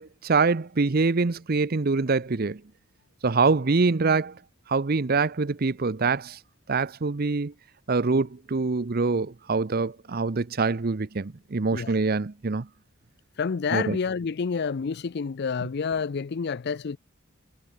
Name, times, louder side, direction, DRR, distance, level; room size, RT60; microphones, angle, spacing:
voice 1, 0.0-2.6 3.2-4.3 4.7-6.4 6.7-7.5 7.9-12.7 13.7-14.0, right 4 dB, 45° right, 0.7 m, -24 dB
voice 2, 13.4-17.0, left 5 dB, 50° left, 0.4 m, -28 dB
head